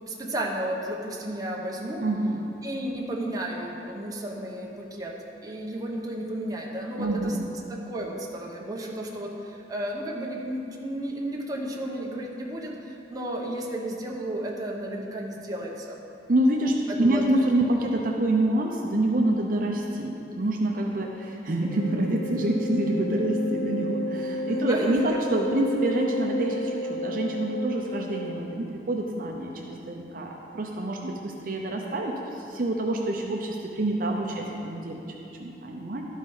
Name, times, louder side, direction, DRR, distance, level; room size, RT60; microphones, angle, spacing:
voice 1, 0.1-2.1 2.6-5.2 5.4-7.4 7.7-16.0 16.9-17.4 17.7-17.9 24.5-25.2, right 1 dB, 20° right, -2 dB, 0.9 m, -33 dB
voice 2, 2.0-2.5 7.0-7.5 16.3-35.0 35.4-36.0, right 1 dB, 50° right, 0 dB, 0.6 m, -26 dB
Wind instrument woodwind instrument, 21.6-28.6, left 1 dB, 80° left, 0.5 m, -33 dB
12.0 x 4.9 x 5.5 m, 2.9 s
head